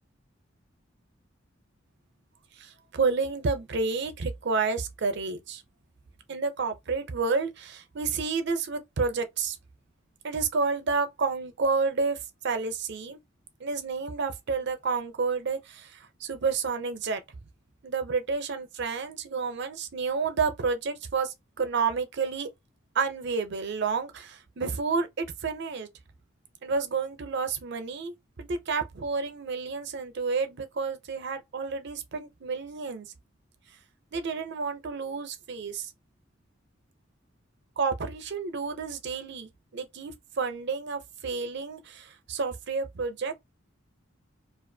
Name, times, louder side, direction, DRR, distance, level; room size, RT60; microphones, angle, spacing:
voice 1, 2.6-5.6 6.3-9.6 10.2-12.2 12.4-13.2 13.6-17.2 17.8-22.5 22.9-25.9 26.6-33.1 34.1-35.9 37.8-43.4, right 4 dB, 60° right, 0.6 m, -30 dB
2.4 x 2.3 x 2.6 m
head